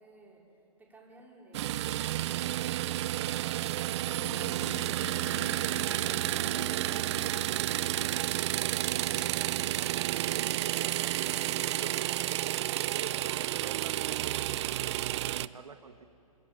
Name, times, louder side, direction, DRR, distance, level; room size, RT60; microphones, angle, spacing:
voice 1, 0.0-3.8 11.6-12.0 12.8-13.4, right 2 dB, 10° right, -2 dB, 5.0 m, -58 dB
sound 1, 1.5-15.5, right 14 dB, 50° right, 0.6 m, -31 dB
sound 2, 4.2-9.7, left 8 dB, 25° left, 1.5 m, -49 dB
voice 2, 10.2-10.7 11.6-12.2 12.9-16.1, right 6 dB, 85° right, 8 dB, 1.4 m, -48 dB
27.5 x 25.5 x 7.6 m, 2.7 s
hypercardioid pair, 135°, 19 cm